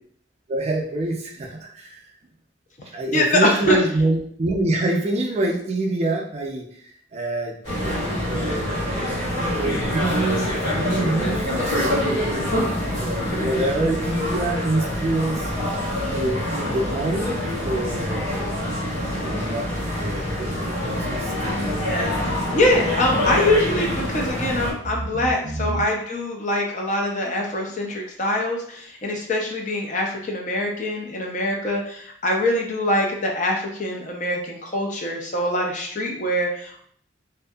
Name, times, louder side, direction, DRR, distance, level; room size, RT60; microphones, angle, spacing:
voice 1, 0.5-2.0 2.9-7.6 7.8-9.1 9.6-15.5 16.0-18.5 19.0-22.3 24.9-25.8, right 2 dB, 35° right, 0 dB, 0.4 m, -27 dB
voice 2, 3.1-3.8 22.5-36.8, left 1 dB, 40° left, 0 dB, 0.5 m, -23 dB
sound 1, 7.6-24.7, left 1 dB, 65° left, 1.4 m, -25 dB
2.7 x 2.5 x 2.2 m, 0.62 s
head